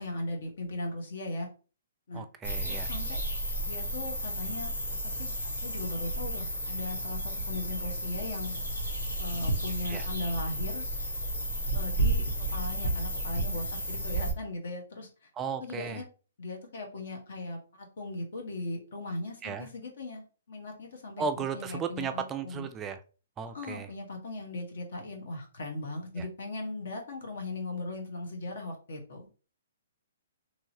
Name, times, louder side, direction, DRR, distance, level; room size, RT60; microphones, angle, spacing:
voice 1, 0.0-1.5 2.1-2.2 2.7-3.2 3.6-4.7 5.0-5.3 5.6-8.6 9.2-10.9 11.7-12.2 12.5-15.3 15.6-16.0 16.4-22.7 23.5-29.4, left 2 dB, 65° left, 1.2 m, -38 dB
voice 2, 2.1-2.9 9.9-10.1 15.4-16.0 19.4-19.7 21.2-23.0 23.4-23.9 26.2-26.3, right 6 dB, 20° right, 0.3 m, -35 dB
sound 1, 2.4-14.3, right 1 dB, 85° left, 1.4 m, -32 dB
3.0 x 2.8 x 2.7 m
hypercardioid pair, 130°, 0 cm